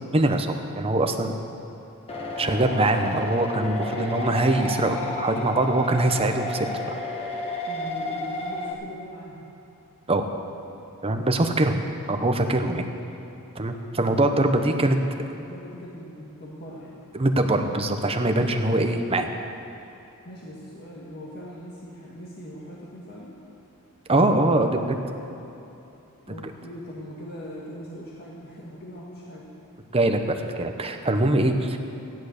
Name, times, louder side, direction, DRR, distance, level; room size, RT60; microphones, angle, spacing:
voice 1, 0.1-1.3 2.4-7.0 10.1-10.2 11.0-11.8 12.1-12.8 13.6-15.0 17.1-19.3 24.1-25.0 29.9-31.8, right 2 dB, 25° right, 5 dB, 0.9 m, -23 dB
sound 1, 2.1-8.7, left 2 dB, 25° left, 1.4 m, -32 dB
voice 2, 7.7-9.5 11.1-11.3 14.2-17.0 20.2-23.4 26.3-29.5, equal, 45° left, -5 dB, 1.7 m, -41 dB
14.5 x 11.0 x 6.6 m, 2.9 s
head